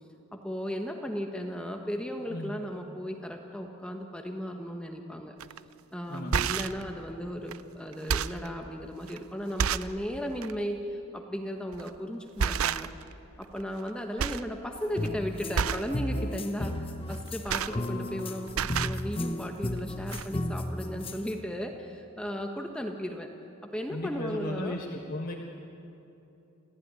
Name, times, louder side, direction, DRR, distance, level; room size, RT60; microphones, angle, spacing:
voice 1, 0.3-5.4 5.9-12.9 13.4-23.3 23.6-24.8, equal, 5° left, 3 dB, 1.2 m, -36 dB
voice 2, 2.3-2.6 6.1-6.6 23.9-25.3, left 1 dB, 45° left, -1 dB, 1.7 m, -36 dB
sound 1, 5.4-5.6 6.1-6.8 7.5-7.6 7.9-8.5 9.1-9.2 9.6-10.0 10.4-10.5 11.7-12.0 12.4-13.1 13.4-13.9 14.2-14.5 14.8-15.1 15.5-15.9 17.1-18.2 18.5-19.0 19.8-19.9 20.1-20.3, right 7 dB, 75° right, 0.5 m, -30 dB
sound 2, 15.0-21.4, left 1 dB, 25° left, 1.0 m, -34 dB
28.0 x 15.5 x 9.7 m, 2.9 s
head